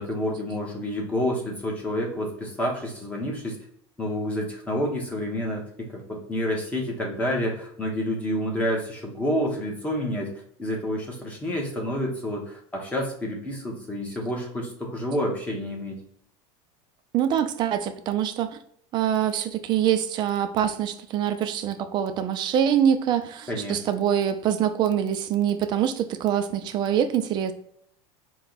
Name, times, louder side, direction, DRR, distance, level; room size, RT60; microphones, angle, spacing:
voice 1, 0.0-3.6 4.0-16.0 23.5-23.8, equal, 10° left, 1.0 m, -29 dB
voice 2, 17.1-18.6 18.9-27.5, right 9 dB, 35° right, 0.4 m, -24 dB
4.5 x 2.2 x 3.9 m
supercardioid pair, 150°, 13 cm